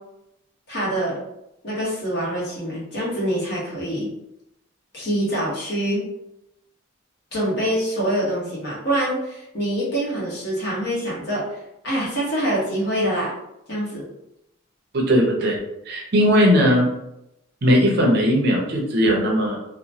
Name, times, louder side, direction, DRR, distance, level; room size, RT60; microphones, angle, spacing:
voice 1, 0.7-1.2 1.6-4.1 4.9-6.0 7.3-11.4 11.8-13.3 13.7-14.1, right 1 dB, 50° left, -6 dB, 1.1 m, -25 dB
voice 2, 14.9-15.6 15.9-16.9 17.6-19.6, equal, 50° right, -1 dB, 0.6 m, -18 dB
2.9 x 2.1 x 2.7 m, 0.85 s
head